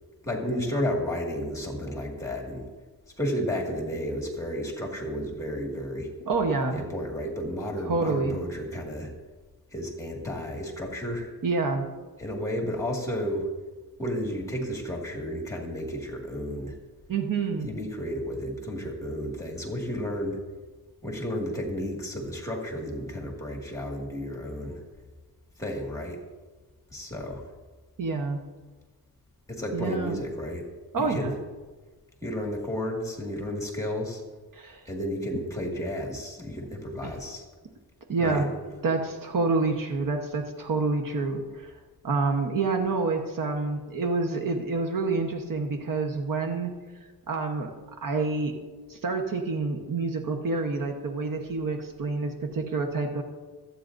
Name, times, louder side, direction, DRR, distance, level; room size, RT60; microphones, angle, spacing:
voice 1, 0.2-2.7 3.2-6.1 6.7-9.1 9.7-11.3 12.2-13.5 14.0-16.8 17.6-20.4 21.0-24.8 25.6-26.2 26.9-27.4 29.5-30.7 31.0-31.3 32.2-34.2 34.9-37.5 38.2-38.5, equal, 10° left, -1 dB, 1.9 m, -32 dB
voice 2, 6.2-6.8 7.8-8.4 11.4-11.9 17.1-17.7 28.0-28.4 29.7-30.2 30.9-31.3 34.5-34.8 37.0-37.1 38.1-38.5 38.8-41.7 42.0-46.7 47.3-47.7 48.0-48.6 48.9-53.2, right 3 dB, 55° right, 3 dB, 1.1 m, -28 dB
25.5 x 8.7 x 2.6 m, 1.3 s
wide cardioid pair, 165°, 39 cm